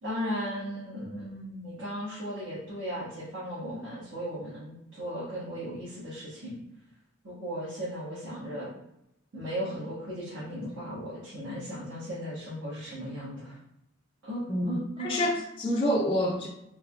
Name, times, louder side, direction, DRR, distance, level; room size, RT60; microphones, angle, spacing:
voice 1, 0.0-6.6 7.2-8.7 9.3-13.6 14.2-15.4, equal, 70° right, -10 dB, 1.3 m, -36 dB
voice 2, 14.5-16.5, equal, 25° left, -2 dB, 0.3 m, -27 dB
3.6 x 3.4 x 2.3 m, 0.81 s
head